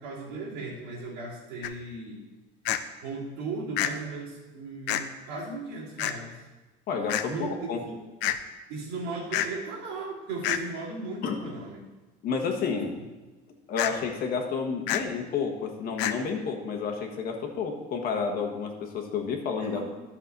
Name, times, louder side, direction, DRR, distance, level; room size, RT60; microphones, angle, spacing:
voice 1, 0.0-2.2 3.0-6.4 7.3-8.0 8.7-11.8 19.6-19.8, right 3 dB, 90° right, -6 dB, 2.9 m, -36 dB
sound 1, 1.6-1.7 2.7-2.8 3.8-3.9 4.9-5.0 6.0-6.1 7.1-7.2 8.2-8.4 9.3-9.5 10.4-10.6 13.8-13.9 14.9-15.0 16.0-16.1, left 11 dB, 70° left, 0.6 m, -27 dB
voice 2, 6.9-7.8 11.2-11.4 12.2-12.9 13.7-19.8, left 5 dB, 50° left, 3 dB, 1.4 m, -30 dB
11.5 x 6.2 x 4.0 m, 1.2 s
cardioid pair, 130°, 19 cm